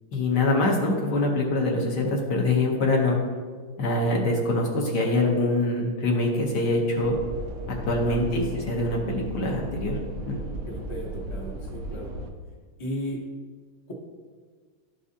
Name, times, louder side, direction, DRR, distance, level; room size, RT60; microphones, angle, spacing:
voice 1, 0.1-3.2 3.8-7.2 7.9-10.0 10.3-10.4, left 2 dB, 60° left, 0 dB, 1.4 m, -24 dB
sound 1, 6.9-12.3, right 1 dB, 70° right, 0.8 m, -35 dB
voice 2, 8.0-8.5 10.7-12.1 12.8-13.2 13.9-14.0, equal, 25° left, -2 dB, 0.6 m, -35 dB
11.5 x 5.0 x 2.7 m, 1.6 s
omnidirectional pair, 2.3 m